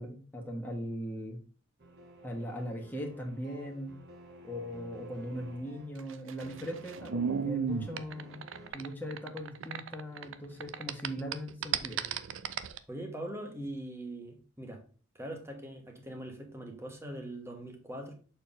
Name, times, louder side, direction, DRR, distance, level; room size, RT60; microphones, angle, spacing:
voice 1, 0.0-1.4 2.2-3.9 4.4-8.4 8.7-12.0, equal, 10° left, 1.3 m, -39 dB
sound 1, 1.8-8.7, right 1 dB, 60° right, 1.3 m, -52 dB
sound 2, 6.0-10.3 10.6-12.8, right 7 dB, 90° right, 0.5 m, -34 dB
voice 2, 12.9-14.8 15.1-18.1, right 1 dB, 15° right, 1.4 m, -42 dB
6.6 x 4.4 x 3.7 m
head